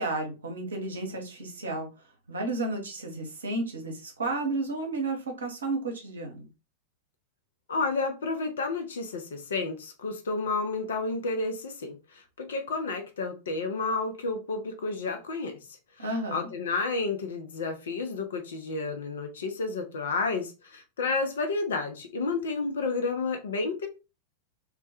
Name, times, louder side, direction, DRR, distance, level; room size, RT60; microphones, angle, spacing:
voice 1, 0.0-1.9 2.3-6.5 16.0-16.5, right 2 dB, 70° right, 2 dB, 0.7 m, -32 dB
voice 2, 7.7-15.5 16.0-23.9, left 3 dB, 65° left, 6 dB, 0.5 m, -31 dB
2.1 x 2.1 x 2.7 m, 0.29 s
figure-of-eight pair, 90°, 0 cm